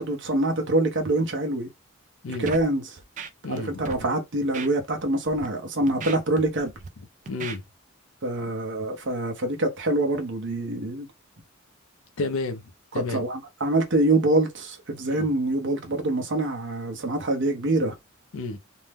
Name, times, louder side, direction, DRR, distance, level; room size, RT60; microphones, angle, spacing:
voice 1, 0.0-1.7 2.4-3.0 3.5-6.7 8.2-11.1 13.0-18.0, right 2 dB, 60° right, 0.8 m, -25 dB
voice 2, 2.2-2.5 3.4-3.9 7.3-7.6 12.2-12.6 12.9-13.2 15.1-15.3 18.3-18.6, left 3 dB, 70° left, 0.5 m, -31 dB
Scratching (performance technique), 2.4-2.7 3.0-3.6 3.8-4.0 4.5-4.7 5.2-5.5 5.9-6.9 7.3-7.6, right 5 dB, 35° right, 0.4 m, -36 dB
2.6 x 2.1 x 3.3 m
head